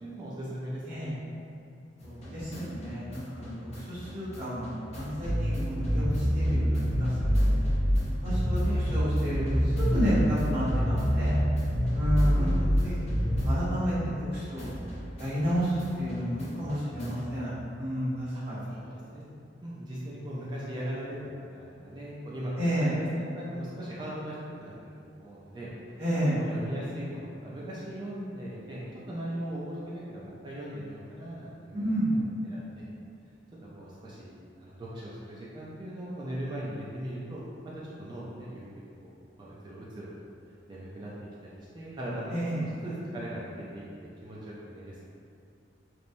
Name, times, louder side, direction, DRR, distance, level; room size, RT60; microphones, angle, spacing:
voice 1, 0.0-1.2 8.6-8.9 12.3-12.7 18.3-19.3 19.6-22.5 22.8-25.7 26.3-32.8 33.8-37.4 37.6-39.1 39.4-40.1 40.7-41.1 41.4-45.0, right 1 dB, 25° right, -7 dB, 0.3 m, -39 dB
sound 1, 2.0-14.3 14.6-17.3, equal, 35° left, 0.5 m, -28 dB
voice 2, 2.0-7.5 8.2-11.4 11.9-12.5 12.8-12.9 13.4-14.7 15.2-18.6 22.6-22.9 26.0-26.4 31.7-32.2 42.3-42.6, equal, 60° right, -12 dB, 1.2 m, -31 dB
3.0 x 2.0 x 2.6 m, 2.5 s
head